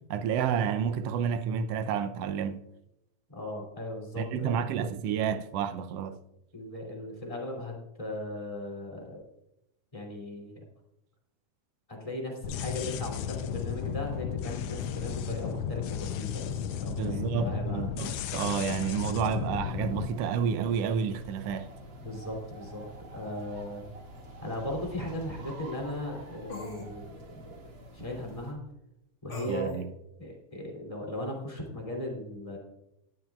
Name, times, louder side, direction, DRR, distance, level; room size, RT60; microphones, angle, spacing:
voice 1, 0.1-2.7 4.2-6.2 16.9-21.7 29.5-29.9, right 7 dB, 75° right, 1.4 m, -30 dB
voice 2, 3.3-4.6 6.5-9.2 9.9-10.6 11.9-17.9 22.0-22.8 23.1-23.8 24.4-27.5 27.9-28.6 29.2-29.8 30.2-32.6, left 1 dB, 10° left, 2.5 m, -37 dB
sound 1, 12.4-20.1, left 8 dB, 85° left, 1.3 m, -34 dB
sound 2, 19.7-28.5, right 2 dB, 40° right, 2.4 m, -47 dB
sound 3, 24.1-24.2 26.5-26.9 29.3-29.8, left 3 dB, 60° left, 0.5 m, -41 dB
17.5 x 9.9 x 2.4 m
omnidirectional pair, 3.5 m